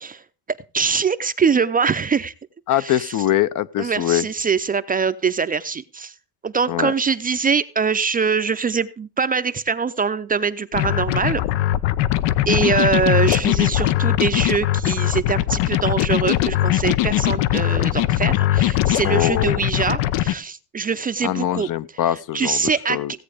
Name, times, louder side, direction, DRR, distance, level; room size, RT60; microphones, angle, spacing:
voice 1, 0.7-2.3 2.7-3.2 3.8-6.1 6.4-11.4 12.5-21.7 22.1-23.0, right 5 dB, 20° right, 0.5 m, -23 dB
voice 2, 2.7-4.3 6.7-6.9 19.0-19.6 21.2-22.6 22.9-23.1, left 12 dB, 50° left, 0.6 m, -22 dB
sound 1, 10.7-20.3, left 13 dB, 85° left, 0.9 m, -20 dB
16.5 x 8.5 x 4.9 m
cardioid pair, 135°, 42 cm